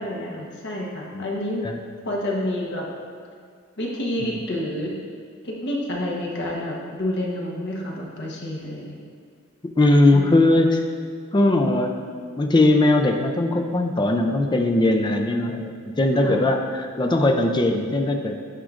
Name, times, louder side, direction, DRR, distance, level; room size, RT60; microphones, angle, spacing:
voice 1, 0.0-1.6 2.0-2.9 3.8-4.9 5.4-9.0 10.1-10.2 16.2-16.4, left 1 dB, 55° left, -3 dB, 1.1 m, -29 dB
voice 2, 9.6-10.8 11.3-12.1 12.4-18.4, left 2 dB, 20° left, 4 dB, 0.4 m, -19 dB
10.0 x 4.7 x 2.5 m, 2.1 s
head